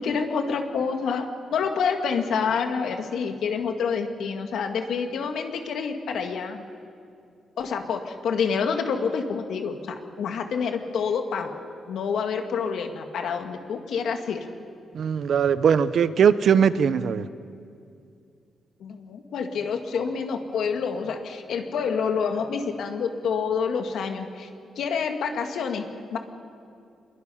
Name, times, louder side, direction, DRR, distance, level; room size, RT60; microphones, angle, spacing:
voice 1, 0.0-6.6 7.6-11.5 11.9-14.4 18.8-24.5 24.8-25.9 26.1-26.2, left 6 dB, 75° left, 5 dB, 1.9 m, -27 dB
voice 2, 14.9-17.3, right 7 dB, 60° right, 14 dB, 0.7 m, -20 dB
27.5 x 22.5 x 5.7 m, 2.4 s
wide cardioid pair, 150°, 0 cm